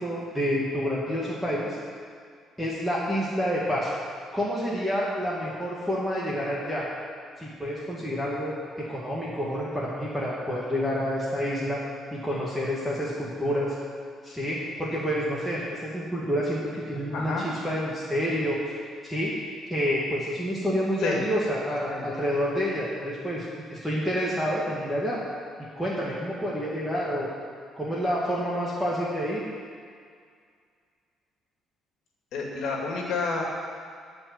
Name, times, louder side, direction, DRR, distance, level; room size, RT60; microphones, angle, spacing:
voice 1, 0.0-1.8 2.6-3.9 4.3-6.9 7.4-11.8 12.1-13.7 14.2-18.6 19.0-19.3 19.7-25.2 25.8-27.3 27.8-29.4, equal, ahead, -7 dB, 1.9 m, -28 dB
voice 2, 17.1-17.5 21.0-21.2 21.9-22.1 32.3-33.4, left 4 dB, 70° left, 0 dB, 2.2 m, -29 dB
15.0 x 5.2 x 9.6 m, 2.1 s
cardioid pair, 155°, 0 cm